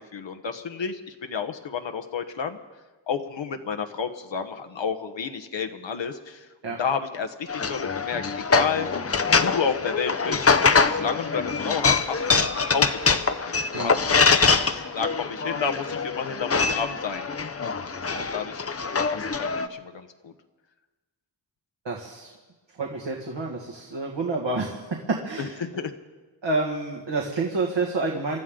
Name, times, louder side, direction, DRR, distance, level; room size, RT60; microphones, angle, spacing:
voice 1, 0.1-2.6 3.1-8.9 9.3-10.5 10.9-17.3 18.0-18.7 19.1-20.3 25.4-25.9, left 6 dB, 75° left, 6 dB, 1.2 m, -31 dB
sound 1, 7.5-19.7, left 4 dB, 30° left, 0.7 m, -24 dB
voice 2, 21.9-22.3 22.8-25.6 26.4-28.4, right 3 dB, 70° right, -1 dB, 2.0 m, -28 dB
28.5 x 13.0 x 3.8 m, 1.3 s
wide cardioid pair, 90°, 46 cm